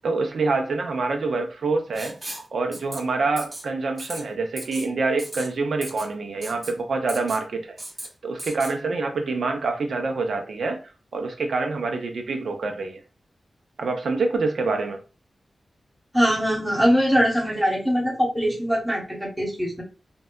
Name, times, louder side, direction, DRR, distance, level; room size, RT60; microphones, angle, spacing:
voice 1, 0.0-2.2 2.5-7.8 8.2-10.8 11.1-13.0 13.8-15.0, right 3 dB, 80° right, 4 dB, 0.5 m, -26 dB
Writing, 1.9-2.5 2.7-3.0 3.4-3.6 4.0-4.2 4.6-4.9 5.2-5.5 5.8-6.1 6.4-6.7 7.1-7.4 7.8-8.1 8.4-8.7, right 1 dB, 40° right, 0.8 m, -36 dB
voice 2, 16.1-19.8, equal, ahead, -3 dB, 1.0 m, -22 dB
2.6 x 2.2 x 2.2 m, 0.32 s
cardioid pair, 50°, 0 cm